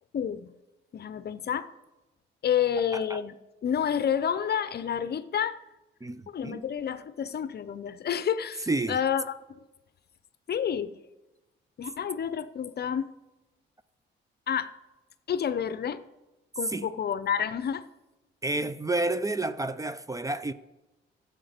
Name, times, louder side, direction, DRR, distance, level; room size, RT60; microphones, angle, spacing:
voice 1, 0.1-0.5 0.9-1.7 2.4-3.3 3.6-5.6 6.3-9.6 10.5-11.0 11.8-13.1 14.5-14.7 15.3-16.0 16.6-17.9, left 8 dB, 50° left, 0.7 m, -29 dB
voice 2, 6.0-6.6 8.7-9.0 16.7-16.9 18.4-20.5, right 2 dB, 15° right, 0.5 m, -30 dB
12.5 x 8.0 x 5.1 m
cardioid pair, 75°, 20 cm